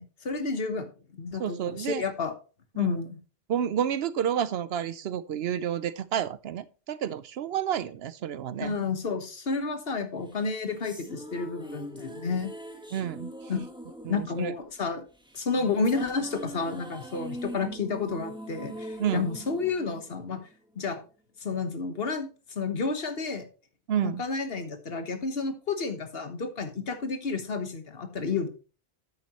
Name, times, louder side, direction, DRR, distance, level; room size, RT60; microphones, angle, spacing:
voice 1, 0.0-2.3 2.7-3.2 8.6-12.5 13.5-13.6 14.1-15.0 15.3-20.4 20.7-21.0 21.4-23.5 24.0-28.5, left 4 dB, 70° left, 1.5 m, -31 dB
voice 2, 1.4-2.0 2.8-3.0 3.5-8.7 12.9-13.3 14.1-14.5 19.0-19.3 23.9-24.2, right 9 dB, 80° right, 0.9 m, -30 dB
sound 1, 10.3-20.7, equal, 5° right, 1.4 m, -42 dB
9.6 x 8.5 x 3.0 m
omnidirectional pair, 1.0 m